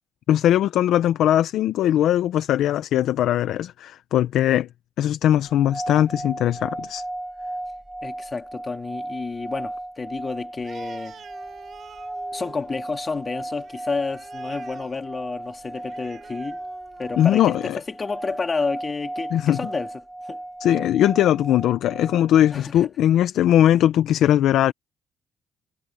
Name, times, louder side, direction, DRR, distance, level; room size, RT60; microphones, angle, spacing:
voice 1, 0.3-4.7 5.0-7.0 17.2-17.8 19.3-19.6 20.6-24.7, left 11 dB, 80° left, 0.7 m, -20 dB
sound 1, 5.4-22.6, right 1 dB, 10° right, 1.1 m, -35 dB
voice 2, 8.0-11.2 12.3-16.6 17.0-19.9 20.3-20.4 22.5-22.9, left 4 dB, 30° left, 2.4 m, -30 dB
Animal, 10.6-17.3, right 8 dB, 60° right, 3.9 m, -48 dB
cardioid pair, 90°, 0 cm